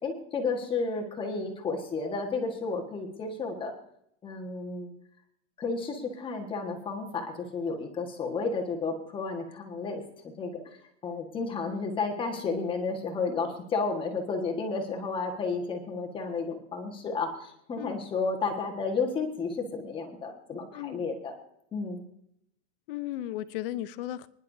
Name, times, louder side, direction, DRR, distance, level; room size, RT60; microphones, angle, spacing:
voice 1, 0.0-3.7 4.2-4.9 5.6-10.0 10.4-10.6 11.0-21.3 21.7-22.0, left 4 dB, 15° left, 2 dB, 1.5 m, -32 dB
voice 2, 20.7-21.1 22.9-24.3, left 13 dB, 50° left, 15 dB, 0.7 m, -35 dB
25.5 x 10.5 x 2.7 m, 0.73 s
supercardioid pair, 175°, 37 cm